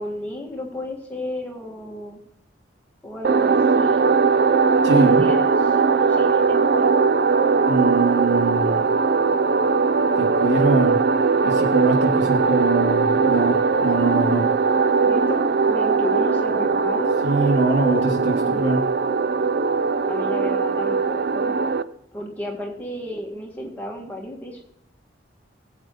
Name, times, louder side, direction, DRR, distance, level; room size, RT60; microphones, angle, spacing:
voice 1, 0.0-2.2 3.0-4.1 4.9-7.0 15.0-17.2 20.1-21.6 22.1-24.6, left 1 dB, 10° left, -1 dB, 1.8 m, -32 dB
sound 1, 3.2-21.8, right 4 dB, 55° right, 0.4 m, -20 dB
voice 2, 4.8-5.2 7.7-8.8 10.1-11.0 11.4-14.4 17.2-18.8, right 3 dB, 70° right, -1 dB, 2.9 m, -22 dB
18.5 x 8.1 x 3.1 m, 0.74 s
head